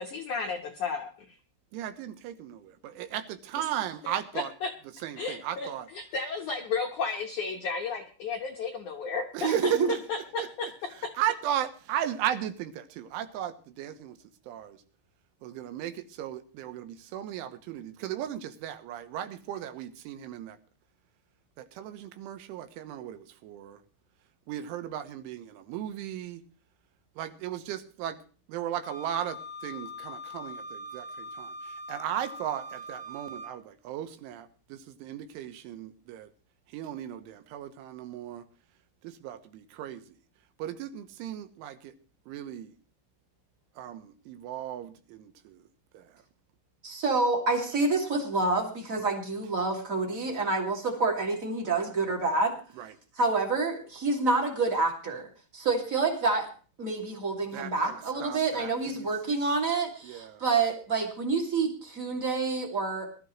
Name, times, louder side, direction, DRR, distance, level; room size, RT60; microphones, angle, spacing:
voice 1, 0.0-1.3 3.6-3.7 4.0-4.7 5.2-9.5 10.1-10.7, left 5 dB, 90° left, 3 dB, 1.7 m, -33 dB
voice 2, 1.7-4.5 5.0-5.9 9.3-10.7 11.2-14.2 14.5-14.8 15.4-20.6 21.6-23.8 24.5-26.4 27.2-28.2 28.5-36.3 36.7-38.5 39.0-40.0 40.6-41.9 42.3-42.7 43.8-45.6 45.9-46.0 52.8-52.9 57.5-59.1 60.0-60.4, right 11 dB, 85° right, 9 dB, 3.5 m, -36 dB
voice 3, 9.4-9.9 46.8-52.5 53.1-55.3 55.5-56.5 56.8-63.1, right 3 dB, 30° right, 1 dB, 1.6 m, -28 dB
Wind instrument woodwind instrument, 28.8-33.5, left 1 dB, 55° left, 0.6 m, -42 dB
20.5 x 12.5 x 3.1 m, 0.38 s
omnidirectional pair, 5.4 m